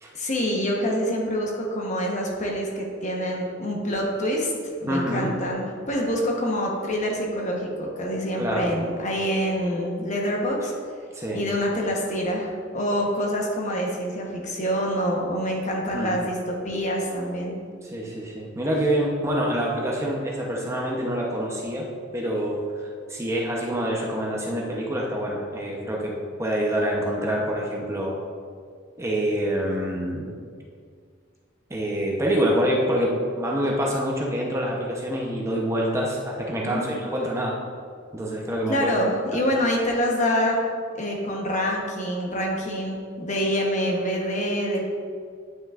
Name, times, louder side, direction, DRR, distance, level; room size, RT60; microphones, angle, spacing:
voice 1, 0.1-10.7 11.3-17.6 36.6-36.9 38.7-40.6 40.9-44.8, equal, 40° left, -1 dB, 1.0 m, -26 dB
voice 2, 4.9-5.3 8.4-8.7 11.1-11.4 15.9-16.1 17.8-22.6 23.1-26.1 26.4-28.2 29.0-30.3 31.7-37.5 38.1-38.9, equal, 15° right, -2 dB, 0.8 m, -26 dB
9.2 x 6.1 x 2.5 m, 2.1 s
head